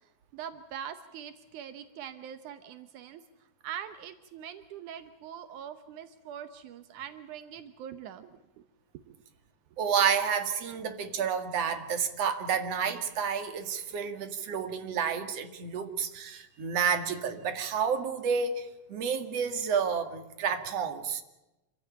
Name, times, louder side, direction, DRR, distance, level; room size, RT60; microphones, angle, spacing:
voice 1, 0.0-3.2 3.6-8.7 9.1-9.2, right 9 dB, 80° right, 10 dB, 2.5 m, -43 dB
voice 2, 9.8-21.2, right 6 dB, 55° right, 7 dB, 3.0 m, -30 dB
27.5 x 16.0 x 8.8 m, 0.98 s
omnidirectional pair, 3.5 m